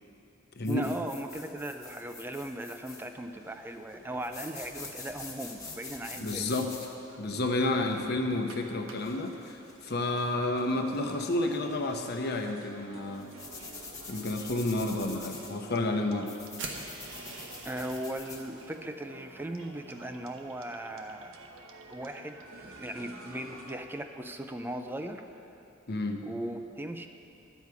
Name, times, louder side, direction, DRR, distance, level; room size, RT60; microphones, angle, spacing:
sound 1, 0.6-18.4, left 3 dB, 15° left, 1.2 m, -47 dB
voice 1, 0.6-6.4 17.6-21.3 21.9-25.2 26.2-27.1, right 1 dB, 10° right, 6 dB, 0.5 m, -38 dB
sound 2, 5.0-6.0 6.5-23.7, right 2 dB, 85° right, 1.0 m, -51 dB
voice 2, 6.2-6.7 7.2-13.3 14.1-16.3 25.9-26.2, left 2 dB, 55° left, 4 dB, 0.9 m, -30 dB
sound 3, 16.6-18.8, right 3 dB, 65° right, 1.1 m, -43 dB
12.0 x 8.2 x 4.8 m, 2.8 s
head